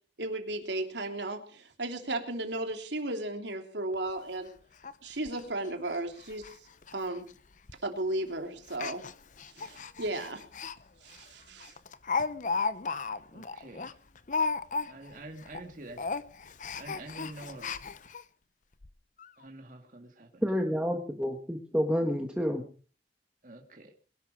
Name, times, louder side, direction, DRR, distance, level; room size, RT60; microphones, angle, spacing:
voice 1, 0.2-4.5 5.0-6.5 6.9-7.3 7.8-9.0 9.5-10.4 11.0-11.7, right 2 dB, 80° right, 5 dB, 3.2 m, -35 dB
Speech, 3.9-4.0 4.4-4.5 4.8-4.9 5.3-5.4 5.9-6.0 6.3-6.5 6.8-6.9 7.7-7.9 8.7-10.8 11.1-11.2 11.6-15.2 15.4-15.6 15.9-18.2 18.8-18.9 19.2-19.3, left 4 dB, 45° left, 0.7 m, -34 dB
voice 2, 13.3-13.9 14.8-16.1 16.8-17.7 19.4-20.4 23.4-23.9, right 2 dB, 45° right, 3 dB, 2.1 m, -46 dB
voice 3, 20.4-22.6, equal, 5° right, 2 dB, 1.7 m, -29 dB
22.0 x 12.0 x 5.0 m, 0.40 s
head